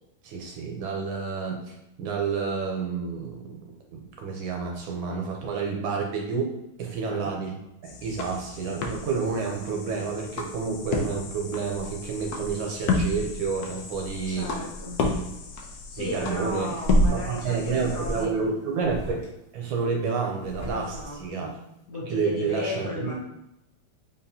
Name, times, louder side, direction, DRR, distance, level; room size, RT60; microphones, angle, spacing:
voice 1, 0.2-3.6 3.9-6.5 6.8-7.6 8.0-14.5 16.0-16.7 17.1-19.2 19.5-21.5 22.0-23.1, right 5 dB, 70° right, 1 dB, 1.3 m, -29 dB
sound 1, 7.8-18.3, left 3 dB, 90° left, 0.8 m, -32 dB
voice 2, 14.3-15.0 15.6-18.3 20.7-21.6 21.9-23.1, left 2 dB, 55° left, -4 dB, 1.5 m, -35 dB
sound 2, 16.8-17.2 18.3-18.4 18.8-19.3 20.4-21.1, right 1 dB, 20° left, 1.1 m, -26 dB
4.2 x 3.7 x 2.7 m, 0.86 s
omnidirectional pair, 2.4 m